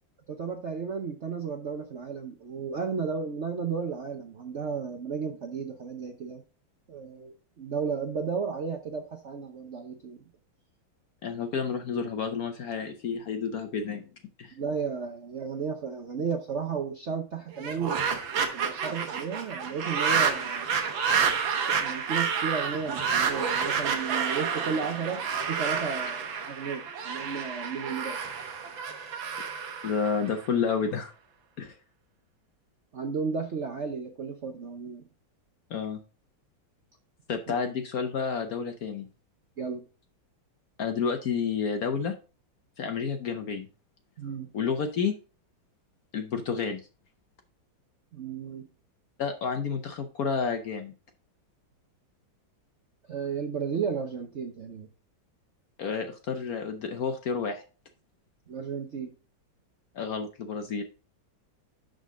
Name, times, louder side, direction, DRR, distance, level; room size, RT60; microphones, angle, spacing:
voice 1, 0.3-6.4 6.9-10.2 14.5-18.0 18.5-20.7 21.8-25.2 25.5-28.2 32.9-35.0 39.6-39.8 44.2-44.5 48.1-48.7 53.1-54.9 58.5-59.1, right 6 dB, 55° right, 3 dB, 0.8 m, -33 dB
voice 2, 11.2-14.0 14.4-14.5 29.8-31.1 31.6-31.7 35.7-36.0 37.3-39.1 40.8-42.1 42.8-43.7 44.5-45.2 46.1-46.9 49.2-50.9 55.8-57.6 59.9-60.8, left 6 dB, 60° left, 7 dB, 1.0 m, -30 dB
sound 1, 17.5-30.7, right 6 dB, 75° right, 1.9 m, -29 dB
11.5 x 4.0 x 3.7 m, 0.35 s
omnidirectional pair, 2.2 m